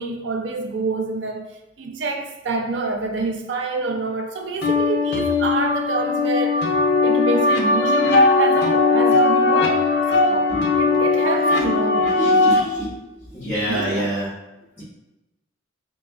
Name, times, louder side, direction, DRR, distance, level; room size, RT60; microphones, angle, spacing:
voice 1, 0.0-1.5 1.8-6.7 7.0-9.8 10.1-12.2 13.7-14.1, right 3 dB, 65° right, 0.4 m, -26 dB
sound 1, 4.6-12.6, left 3 dB, 55° left, 0.4 m, -19 dB
voice 2, 12.1-13.0 13.3-14.3, equal, 10° left, 1.0 m, -26 dB
4.0 x 3.5 x 2.3 m
head